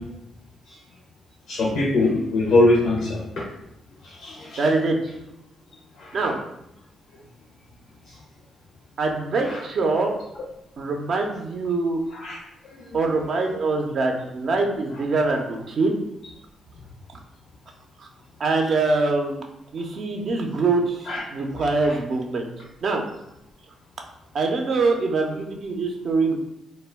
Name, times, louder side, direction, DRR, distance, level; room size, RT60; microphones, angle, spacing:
voice 1, 1.5-3.2 4.0-4.6 6.0-6.2 12.2-12.4 21.1-21.2, left 2 dB, 70° left, -4 dB, 0.5 m, -21 dB
voice 2, 4.6-5.1 6.1-6.4 9.0-10.2 10.8-12.0 12.9-16.0 18.0-18.1 18.4-19.4 19.7-22.4 22.8-23.0 24.3-26.4, right 3 dB, 60° right, 2 dB, 0.5 m, -24 dB
2.2 x 2.1 x 3.3 m, 0.80 s
supercardioid pair, 50°, 0 cm